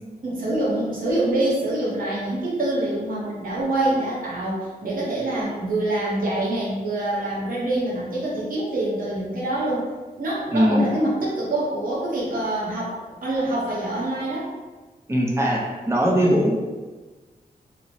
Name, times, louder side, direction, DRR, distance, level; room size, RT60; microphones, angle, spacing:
voice 1, 0.2-9.9 10.2-14.5, right 1 dB, 60° right, -7 dB, 0.8 m, -25 dB
voice 2, 10.5-10.8 15.1-16.5, equal, 15° right, -3 dB, 0.5 m, -20 dB
3.0 x 2.0 x 2.7 m, 1.3 s
wide cardioid pair, 120°, 16 cm